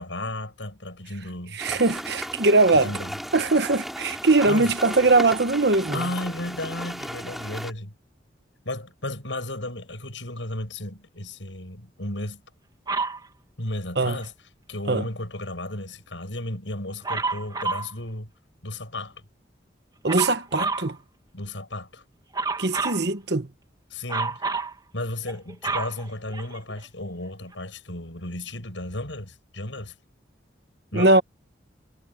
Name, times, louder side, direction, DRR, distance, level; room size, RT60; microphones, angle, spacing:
voice 1, 0.0-1.6 2.7-3.2 4.4-4.7 5.9-7.9 8.7-12.4 13.6-14.3 14.7-18.3 18.6-19.3 21.3-22.0 23.9-24.4 24.9-30.0 30.9-31.1, left 1 dB, 80° left, 7.0 m, -34 dB
sound 1, 1.6-7.7, equal, ahead, 3.1 m, -35 dB
voice 2, 1.6-2.9 3.3-6.0 14.0-14.2 14.9-15.0 20.0-21.0 22.6-23.5 30.9-31.2, right 3 dB, 60° right, 1.2 m, -21 dB
Dog, 12.9-13.2 17.0-17.9 20.1-20.9 22.3-23.0 24.1-24.7 25.3-26.8 27.5-27.6, right 4 dB, 20° right, 2.4 m, -28 dB
head